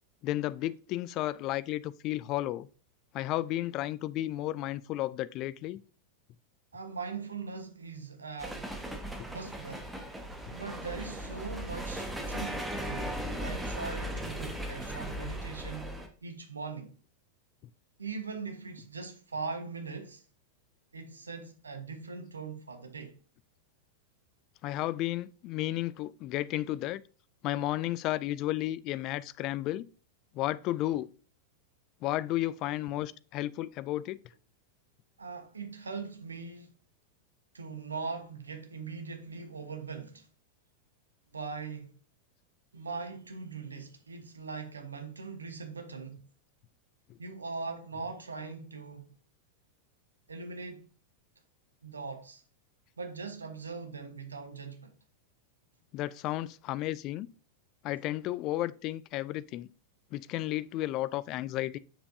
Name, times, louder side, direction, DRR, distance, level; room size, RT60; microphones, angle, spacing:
voice 1, 0.2-2.7 3.1-5.8 24.6-27.0 27.4-29.9 30.3-31.1 32.0-34.2 47.1-47.2 55.9-57.3 57.8-59.7 60.1-61.8, left 15 dB, 40° left, 0.4 m, -33 dB
voice 2, 6.7-8.7 9.3-9.9 10.5-17.0 18.0-20.2 20.9-23.2 35.2-36.7 37.5-40.3 41.3-41.9 42.7-46.2 47.2-49.1 50.3-50.9 51.8-52.4 53.0-54.9, right 4 dB, 75° right, 1.2 m, -41 dB
sound 1, 8.4-16.1, right 1 dB, 5° right, 1.4 m, -37 dB
7.4 x 6.8 x 2.7 m
figure-of-eight pair, 90°, 0 cm